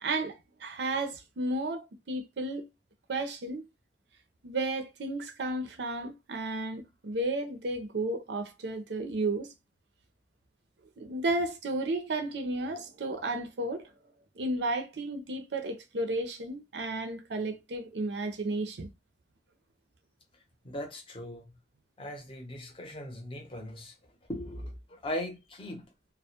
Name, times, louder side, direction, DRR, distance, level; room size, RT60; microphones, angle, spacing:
voice 1, 0.0-2.6 3.1-3.7 4.4-9.5 11.0-13.9 14.4-18.9, right 2 dB, 80° right, 0.5 m, -33 dB
voice 2, 20.6-21.5 22.0-24.0 24.3-25.8, left 1 dB, 30° left, 0.6 m, -39 dB
2.2 x 2.0 x 2.8 m
head